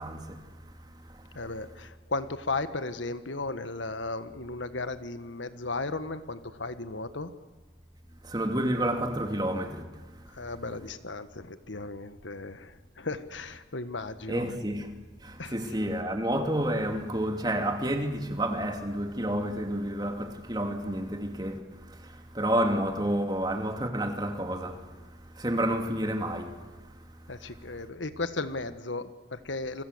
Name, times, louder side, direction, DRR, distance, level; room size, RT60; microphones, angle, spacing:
voice 1, 0.0-1.6 8.2-10.6 14.3-14.9 15.2-27.9, right 1 dB, 20° right, 2.6 m, -31 dB
voice 2, 1.3-7.3 10.3-14.4 15.4-15.5 27.3-29.8, left 3 dB, 85° left, 1.6 m, -35 dB
28.5 x 24.5 x 8.1 m
head